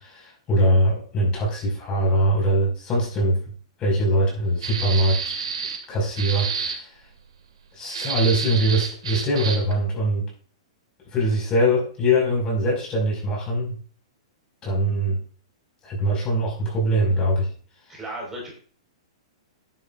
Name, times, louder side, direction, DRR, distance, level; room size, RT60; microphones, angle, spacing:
voice 1, 0.0-3.4 3.8-5.3 5.9-6.9 7.8-10.2 11.1-13.7 14.6-15.2 15.8-17.5, right 1 dB, 25° left, -2 dB, 6.1 m, -22 dB
sound 1, 4.6-5.8 6.2-6.8 7.9-9.7, right 6 dB, 70° right, 2.3 m, -29 dB
voice 2, 17.9-18.5, right 1 dB, 10° right, -2 dB, 5.3 m, -34 dB
12.0 x 10.5 x 2.7 m, 0.42 s
hypercardioid pair, 120°, 3 cm